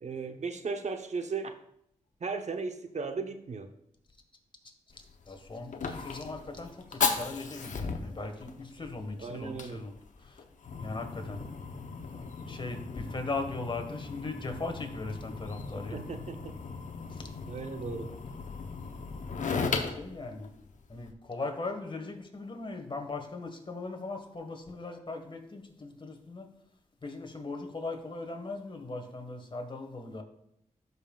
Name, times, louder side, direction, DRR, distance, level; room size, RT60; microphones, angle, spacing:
voice 1, 0.0-1.5 2.2-3.7 9.2-9.8 15.9-16.6 17.5-18.1, right 4 dB, 60° right, 6 dB, 0.9 m, -36 dB
voice 2, 4.6-9.9 10.2-10.4 10.8-11.5 12.0-16.1 17.1-17.2 19.4-20.6 20.9-26.5 27.0-30.2, left 3 dB, 40° left, 5 dB, 1.5 m, -39 dB
Fire, 4.9-21.1, left 5 dB, 70° left, 0.8 m, -37 dB
13.0 x 5.5 x 2.4 m, 0.74 s
cardioid pair, 55°, 14 cm